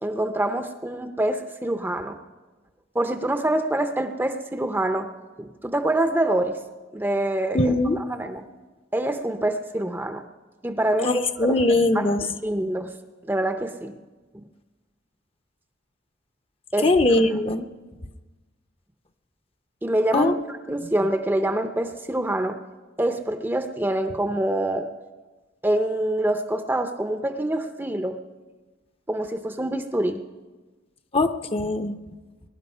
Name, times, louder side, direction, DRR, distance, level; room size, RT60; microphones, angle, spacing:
voice 1, 0.0-2.2 2.9-5.1 5.4-6.6 6.9-8.5 8.9-10.2 10.6-11.5 11.9-12.1 12.4-12.9 13.3-14.0 14.3-14.4 16.7-17.4 19.8-22.6 23.0-24.9 25.6-28.2 29.1-30.2, right 1 dB, 10° right, 8 dB, 0.6 m, -26 dB
voice 2, 7.5-8.0 11.0-12.2 16.8-17.7 20.1-20.3 31.1-32.0, left 2 dB, 30° left, 8 dB, 0.7 m, -21 dB
22.0 x 11.5 x 5.5 m, 1.3 s
head